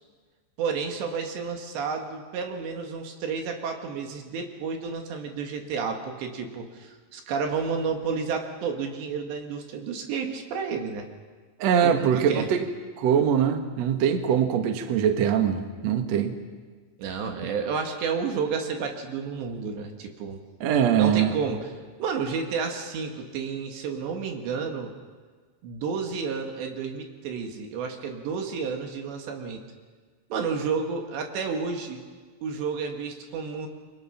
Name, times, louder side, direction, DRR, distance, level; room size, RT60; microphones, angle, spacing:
voice 1, 0.6-11.1 11.8-12.5 17.0-20.4 21.0-21.7 22.0-24.9 25.6-29.6 30.3-32.0 32.4-33.7, right 5 dB, 70° right, 3 dB, 3.8 m, -31 dB
voice 2, 11.6-12.6 13.0-16.3 20.6-21.3, right 8 dB, 85° right, 6 dB, 1.5 m, -22 dB
28.0 x 24.0 x 5.8 m, 1.5 s
omnidirectional pair, 5.5 m